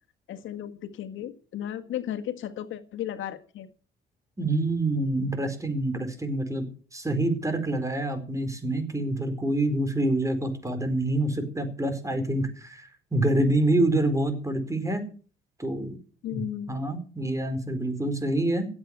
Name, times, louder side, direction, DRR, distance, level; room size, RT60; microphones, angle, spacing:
voice 1, 0.3-3.7 16.2-16.7, left 11 dB, 80° left, 8 dB, 1.7 m, -34 dB
voice 2, 4.4-6.7 6.9-15.0 15.6-16.0 16.3-18.7, right 1 dB, 15° right, 9 dB, 4.6 m, -27 dB
16.0 x 8.8 x 8.1 m, 0.40 s
cardioid pair, 90°, 20 cm